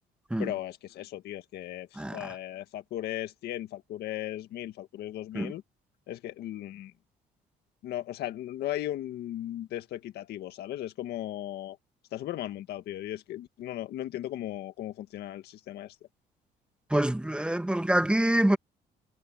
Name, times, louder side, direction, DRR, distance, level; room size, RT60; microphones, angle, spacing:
voice 1, 0.4-5.6 6.1-6.9 7.8-11.8 12.1-16.0, left 13 dB, 70° left, 1.8 m, -37 dB
voice 2, 2.0-2.3 5.3-5.5 16.9-18.6, right 1 dB, 5° right, 1.4 m, -26 dB
cardioid pair, 110°, 17 cm